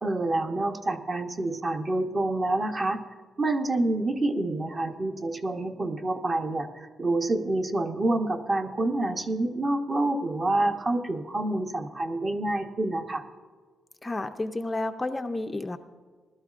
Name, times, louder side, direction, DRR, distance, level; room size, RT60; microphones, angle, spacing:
voice 1, 0.0-3.0 3.4-13.2, right 2 dB, 30° right, 5 dB, 0.8 m, -27 dB
voice 2, 14.0-15.8, left 2 dB, 15° left, 7 dB, 0.4 m, -31 dB
20.0 x 12.5 x 2.4 m, 1.5 s
cardioid pair, 135°, 0 cm